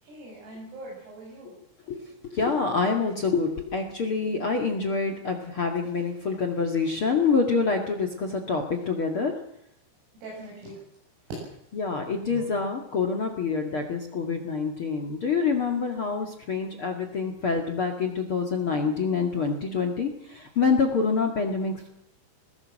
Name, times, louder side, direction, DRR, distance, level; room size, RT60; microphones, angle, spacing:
voice 1, 0.0-1.5 10.1-10.8 12.3-12.5, right 2 dB, 90° right, -4 dB, 10.5 m, -42 dB
voice 2, 1.9-9.3 11.7-21.9, left 5 dB, 60° left, 6 dB, 1.4 m, -26 dB
21.0 x 19.5 x 7.6 m, 0.74 s
omnidirectional pair, 5.9 m